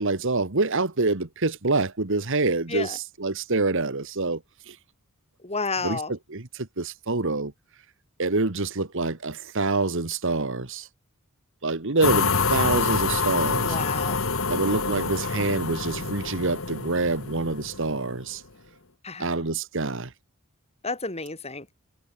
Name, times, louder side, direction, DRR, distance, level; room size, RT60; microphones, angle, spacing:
voice 1, 0.0-4.8 5.8-7.5 8.2-10.9 11.6-13.8 14.5-18.4 19.2-20.1, right 3 dB, 60° right, 1.7 m, -26 dB
voice 2, 5.4-6.1 13.6-14.2 19.0-19.3 20.8-21.7, left 3 dB, 30° left, 6.3 m, -31 dB
sound 1, 12.0-18.2, left 4 dB, 65° left, 1.9 m, -27 dB
head